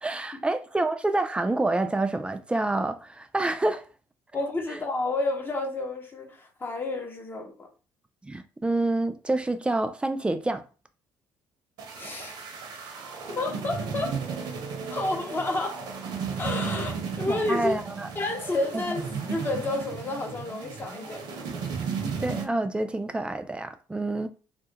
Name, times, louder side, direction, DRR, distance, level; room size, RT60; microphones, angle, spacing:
voice 1, 0.0-3.9 8.2-10.6 17.3-18.1 18.7-18.8 22.2-24.3, right 2 dB, 15° right, 0.3 m, -27 dB
voice 2, 4.3-7.7 12.0-12.4 13.4-14.2 14.9-15.8 16.4-17.8 18.2-21.2, left 2 dB, 25° left, 0.6 m, -30 dB
sound 1, 11.8-22.4, right 5 dB, 70° right, 0.7 m, -34 dB
2.2 x 2.0 x 2.8 m
supercardioid pair, 70°, 8 cm